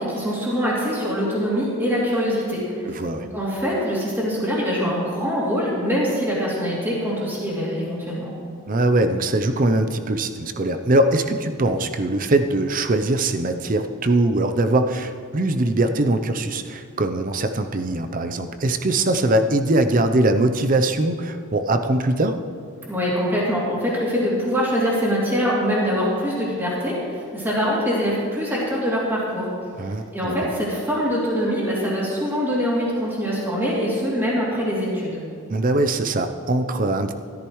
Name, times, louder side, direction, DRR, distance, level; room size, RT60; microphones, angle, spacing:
voice 1, 0.0-2.6 3.3-8.3 22.9-29.5 30.1-35.2, equal, 10° right, -7 dB, 2.8 m, -23 dB
voice 2, 2.9-3.3 8.7-22.4 29.8-30.3 35.5-37.1, right 2 dB, 40° right, 8 dB, 0.6 m, -21 dB
13.5 x 13.5 x 3.1 m, 2.3 s
head